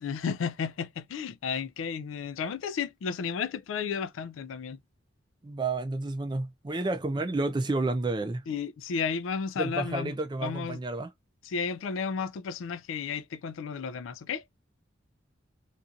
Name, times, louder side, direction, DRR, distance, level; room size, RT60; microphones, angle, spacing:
voice 1, 0.0-4.8 8.5-10.2 10.4-10.8 11.4-14.5, left 6 dB, 90° left, 0.4 m, -33 dB
voice 2, 5.4-8.4 9.6-11.1, right 2 dB, 25° right, 0.4 m, -30 dB
2.5 x 2.4 x 2.6 m
head